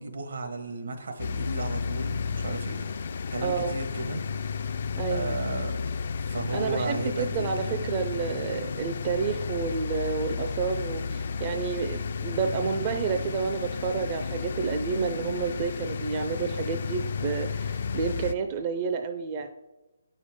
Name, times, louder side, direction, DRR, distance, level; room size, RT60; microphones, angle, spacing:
voice 1, 0.0-2.8 3.3-4.2 4.5-4.6 5.1-5.8 6.3-7.8, right 3 dB, 75° right, 7 dB, 1.1 m, -34 dB
sound 1, 1.2-18.3, left 5 dB, 55° left, 0.3 m, -32 dB
voice 2, 3.4-3.8 5.0-5.3 6.5-19.5, right 6 dB, 30° right, 7 dB, 0.4 m, -30 dB
8.5 x 5.4 x 3.6 m, 1.1 s
hypercardioid pair, 155°, 0 cm